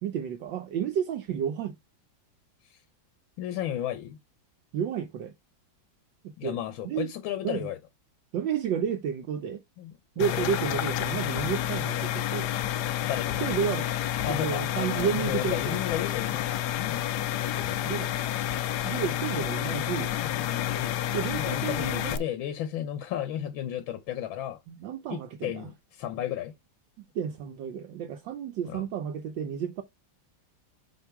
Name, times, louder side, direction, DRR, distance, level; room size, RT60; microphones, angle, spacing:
voice 1, 0.0-1.8 4.7-5.3 6.4-6.6 6.8-7.1 7.4-7.7 8.3-9.6 10.2-12.5 13.4-13.9 14.3-15.8 17.8-18.1 18.8-20.2 21.1-22.2 24.7-25.7 27.0-29.8, right 8 dB, 75° right, 1.5 m, -31 dB
voice 2, 3.4-4.2 6.4-7.8 9.8-10.4 11.2-11.5 13.0-13.7 14.2-17.9 20.2-21.0 21.4-24.6 25.1-26.5 28.7-28.8, left 11 dB, 90° left, 1.6 m, -34 dB
sound 1, 10.2-22.2, left 12 dB, 70° left, 1.0 m, -30 dB
8.0 x 2.7 x 5.8 m
omnidirectional pair, 2.1 m